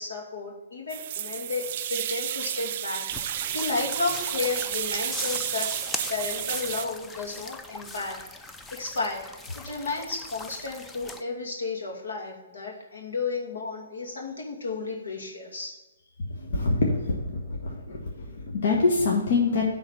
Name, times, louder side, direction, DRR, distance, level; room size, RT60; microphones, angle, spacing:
voice 1, 0.0-5.7 6.1-8.2 8.7-9.3 9.5-15.7, left 3 dB, 85° left, -2 dB, 2.3 m, -33 dB
sound 1, 0.9-6.9, right 11 dB, 45° right, 0.4 m, -32 dB
sound 2, 3.1-11.2, left 3 dB, 10° left, 0.4 m, -40 dB
voice 2, 16.5-19.6, left 3 dB, 60° left, -2 dB, 1.4 m, -25 dB
9.7 x 3.9 x 5.7 m, 1.1 s
hypercardioid pair, 145°, 0 cm